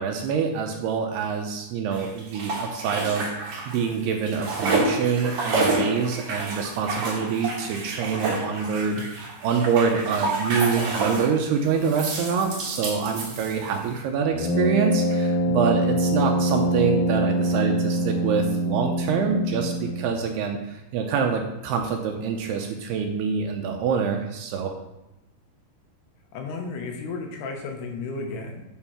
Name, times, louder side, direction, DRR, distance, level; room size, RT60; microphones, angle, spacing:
voice 1, 0.0-3.3 3.7-9.1 9.4-24.7, right 6 dB, 80° right, 3 dB, 2.6 m, -25 dB
sound 1, 1.9-3.9 4.1-11.3 11.8-13.9, right 2 dB, 55° right, 1.7 m, -29 dB
Brass instrument, 14.3-20.2, right 1 dB, 55° left, 2.7 m, -24 dB
voice 2, 26.3-28.6, left 3 dB, 75° left, 2 dB, 3.0 m, -33 dB
8.9 x 4.4 x 5.9 m, 0.93 s
omnidirectional pair, 4.9 m